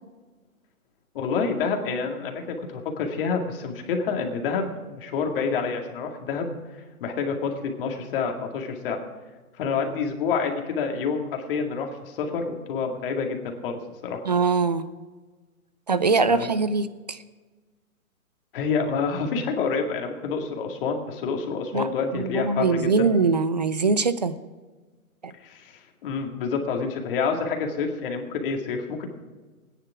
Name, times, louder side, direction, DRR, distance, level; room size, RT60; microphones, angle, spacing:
voice 1, 1.1-9.0 9.6-14.2 16.3-16.5 18.5-23.1 25.4-29.1, left 5 dB, 40° left, 3 dB, 2.1 m, -28 dB
voice 2, 14.2-14.9 15.9-17.2 21.7-24.4 25.2-25.3, right 4 dB, 30° right, 14 dB, 0.4 m, -23 dB
17.5 x 10.0 x 4.8 m, 1.3 s
hypercardioid pair, 150°, 44 cm